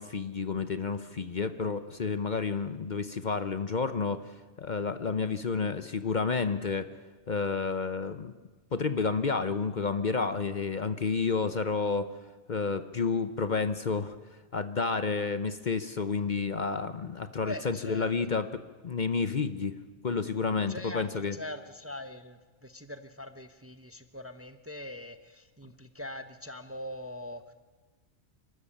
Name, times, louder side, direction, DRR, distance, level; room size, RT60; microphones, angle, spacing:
voice 1, 0.0-6.9 7.3-8.3 8.7-12.1 12.5-14.2 14.5-19.8 20.0-21.4, left 4 dB, 45° left, 11 dB, 0.9 m, -30 dB
voice 2, 17.4-18.1 20.7-27.4, left 1 dB, 15° right, 9 dB, 0.8 m, -42 dB
28.5 x 13.0 x 8.6 m, 1.2 s
omnidirectional pair, 1.2 m